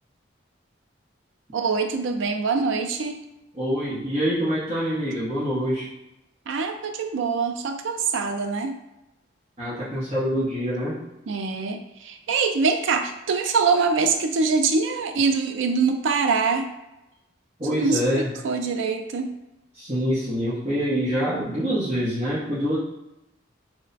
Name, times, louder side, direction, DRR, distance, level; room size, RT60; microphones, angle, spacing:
voice 1, 1.5-3.2 6.5-8.8 11.3-16.7 17.6-19.3, right 4 dB, 75° right, 5 dB, 0.4 m, -24 dB
voice 2, 3.5-5.9 9.6-11.0 17.6-18.3 19.7-22.8, equal, 35° right, -11 dB, 1.0 m, -25 dB
3.1 x 2.1 x 3.9 m, 0.93 s
head